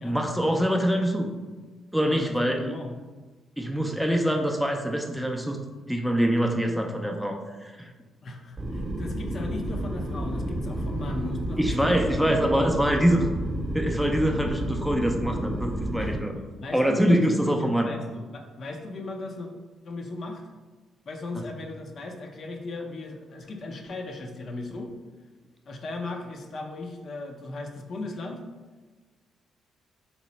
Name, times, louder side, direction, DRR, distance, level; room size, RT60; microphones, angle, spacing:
voice 1, 0.0-1.3 1.9-2.6 3.6-5.6 5.9-7.9 11.6-13.3 13.7-16.3 16.7-17.9 21.3-21.4, equal, ahead, 2 dB, 0.4 m, -24 dB
voice 2, 2.1-2.9 8.2-12.0 16.0-16.2 16.6-19.5 19.8-20.4 21.1-24.9 25.7-28.4, left 2 dB, 50° left, 3 dB, 0.5 m, -37 dB
sound 1, 8.6-16.1, right 1 dB, 25° right, 0.8 m, -31 dB
3.0 x 3.0 x 4.0 m, 1.3 s
cardioid pair, 90°, 0 cm